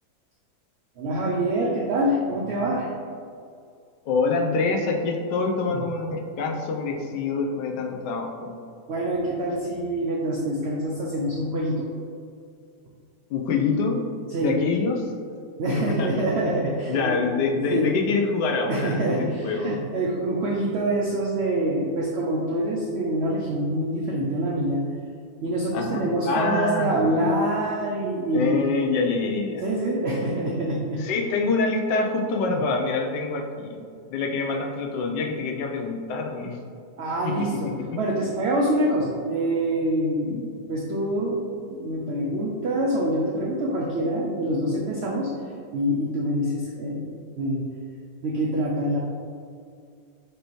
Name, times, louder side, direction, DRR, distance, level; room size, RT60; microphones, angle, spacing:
voice 1, 1.0-2.9 5.7-5.8 8.9-11.9 14.3-14.6 15.6-17.2 17.7-17.9 18.7-24.8 25.4-28.6 29.6-31.0 32.5-32.6 37.0-40.3 40.7-45.3 45.7-47.7 48.2-49.0, right 1 dB, 80° right, -2 dB, 0.5 m, -25 dB
voice 2, 4.1-8.6 13.3-14.0 14.4-15.0 15.7-16.2 16.9-19.8 25.7-27.3 28.3-29.6 31.0-33.8 34.1-36.6 37.2-37.8 40.3-40.5, left 4 dB, 90° left, 2 dB, 1.2 m, -26 dB
6.4 x 2.7 x 3.0 m, 2.3 s
omnidirectional pair, 1.7 m